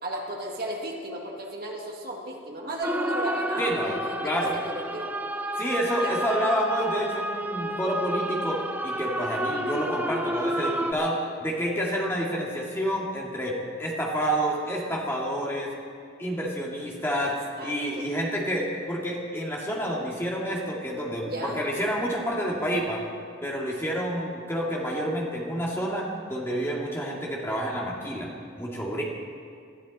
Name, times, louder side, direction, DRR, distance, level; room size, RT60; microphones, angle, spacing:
voice 1, 0.0-5.1 6.0-6.2 17.2-17.3 17.6-18.0 21.3-21.6, right 1 dB, 50° right, -1 dB, 2.2 m, -34 dB
sound 1, 2.8-10.9, right 1 dB, 10° right, 0.5 m, -30 dB
voice 2, 3.6-4.6 5.6-15.7 16.2-17.4 17.6-23.0 23.4-28.3 28.6-29.0, equal, 10° left, -3 dB, 2.2 m, -29 dB
20.5 x 12.0 x 4.2 m, 2.4 s
head